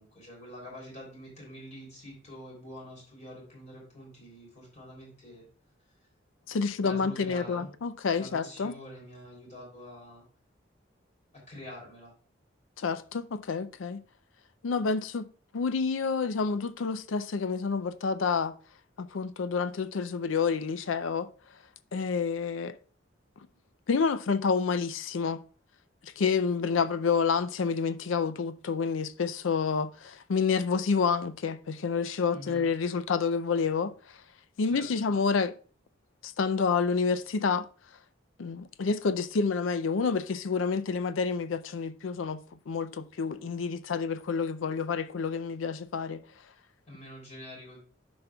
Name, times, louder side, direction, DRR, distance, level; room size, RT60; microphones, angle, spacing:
voice 1, 0.0-5.4 6.8-7.7 8.1-10.2 11.5-12.1 32.3-32.6 34.6-35.1 46.9-47.8, left 1 dB, 35° left, 3.2 m, -46 dB
voice 2, 6.5-8.7 12.8-14.0 14.6-15.3 15.5-18.5 19.0-21.3 21.9-22.8 23.9-25.4 26.0-33.9 34.6-35.5 36.2-37.7 38.4-46.2, left 5 dB, 85° left, 0.5 m, -29 dB
12.0 x 5.2 x 2.3 m
head